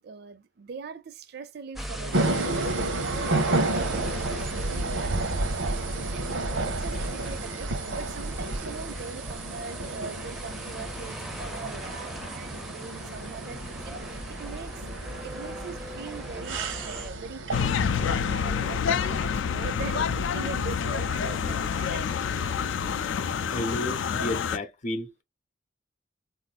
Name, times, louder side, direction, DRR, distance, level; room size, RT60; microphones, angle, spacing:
voice 1, 0.0-22.5, right 5 dB, 55° right, 0.5 m, -41 dB
sound 1, 1.7-17.1, equal, ahead, 0.5 m, -40 dB
sound 2, 2.1-18.4, right 2 dB, 85° right, 0.8 m, -31 dB
sound 3, 17.5-24.6, left 6 dB, 80° left, 0.4 m, -27 dB
voice 2, 23.5-25.1, left 1 dB, 40° left, 0.6 m, -32 dB
3.8 x 2.5 x 2.4 m
head